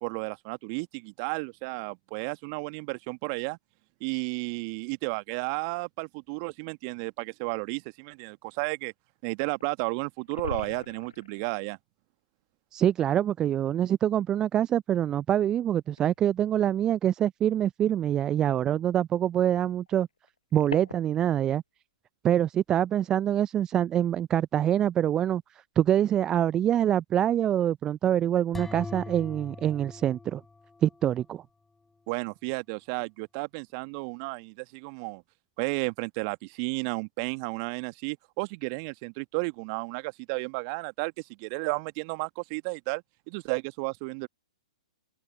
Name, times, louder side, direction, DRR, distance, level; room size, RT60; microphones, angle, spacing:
voice 1, 0.0-3.6 4.0-8.9 9.2-11.8 32.1-35.2 35.6-44.3, right 34 dB, 35° right, 1.4 m, -33 dB
sound 1, 7.0-7.1 9.6-9.7 9.9-10.0 10.2-11.6 13.0-13.1 13.9-14.0 16.0-16.2 17.5-17.6 19.7-21.3, left 5 dB, 75° left, 6.2 m, -40 dB
voice 2, 12.7-20.1 20.5-21.6 22.2-30.4 30.8-31.4, right 10 dB, 20° right, 0.4 m, -25 dB
sound 2, 28.5-31.3, left 3 dB, 5° left, 7.1 m, -42 dB
open air
figure-of-eight pair, 115°, 3 cm